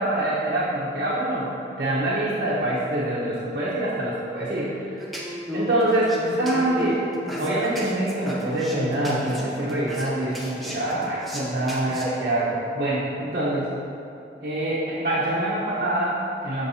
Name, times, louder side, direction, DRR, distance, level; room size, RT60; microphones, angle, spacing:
voice 1, 0.0-1.5 1.8-5.0 5.5-13.7 14.4-16.7, right 1 dB, 55° right, -9 dB, 0.9 m, -25 dB
sound 1, 5.0-12.1, equal, ahead, 0.7 m, -34 dB
7.2 x 5.3 x 2.7 m, 2.7 s
head